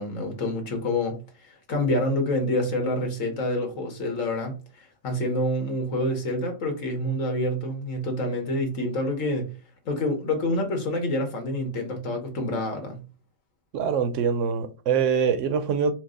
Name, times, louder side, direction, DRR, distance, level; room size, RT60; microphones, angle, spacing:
voice 1, 0.0-9.5 9.9-13.0, left 1 dB, 85° left, 1.5 m, -27 dB
voice 2, 13.7-15.9, right 6 dB, 80° right, 1.0 m, -24 dB
4.6 x 2.1 x 3.7 m
omnidirectional pair, 1.3 m